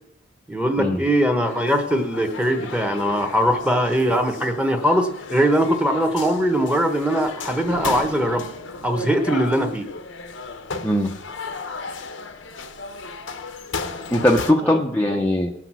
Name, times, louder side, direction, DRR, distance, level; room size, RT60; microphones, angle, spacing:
voice 1, 0.5-8.5 8.8-9.9 14.6-14.8, equal, 5° right, 6 dB, 1.1 m, -21 dB
sound 1, 1.4-14.5, left 4 dB, 80° left, 0.9 m, -35 dB
sound 2, 6.8-9.4, right 2 dB, 85° right, 1.1 m, -39 dB
voice 2, 14.1-15.5, left 1 dB, 10° left, 0 dB, 0.7 m, -20 dB
18.0 x 6.0 x 6.1 m, 0.77 s
head